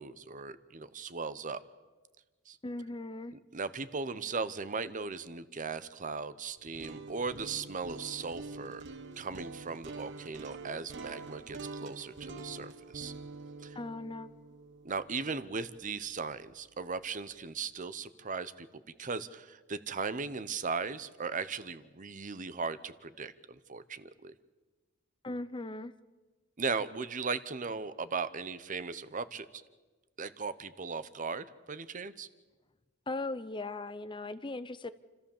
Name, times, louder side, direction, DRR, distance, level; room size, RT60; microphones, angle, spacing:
voice 1, 0.0-1.6 2.5-2.6 3.3-8.8 9.2-13.1 13.6-13.8 14.8-18.7 19.0-24.3 26.6-29.5 30.2-32.3, right 4 dB, 40° right, 15 dB, 0.8 m, -38 dB
voice 2, 2.6-3.3 13.7-14.3 25.2-25.9 33.1-34.9, left 2 dB, 25° left, 14 dB, 0.6 m, -38 dB
sound 1, 6.6-16.6, right 3 dB, 60° right, 1.1 m, -46 dB
28.5 x 14.0 x 7.2 m, 1.3 s
head